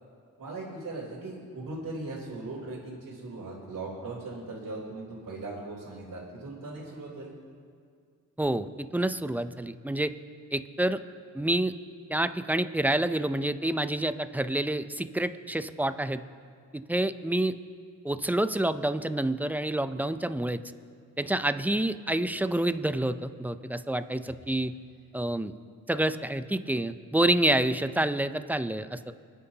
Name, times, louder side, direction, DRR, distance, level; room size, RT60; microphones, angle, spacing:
voice 1, 0.4-7.4 24.2-24.3, right 2 dB, 75° right, -9 dB, 3.4 m, -39 dB
voice 2, 8.4-10.1 10.5-11.0 11.3-11.7 12.1-16.2 16.9-17.6 18.0-20.6 21.2-24.7 25.1-25.5 25.9-29.1, right 1 dB, 5° right, 11 dB, 0.5 m, -28 dB
26.0 x 9.8 x 2.9 m, 2.1 s
cardioid pair, 65°, 34 cm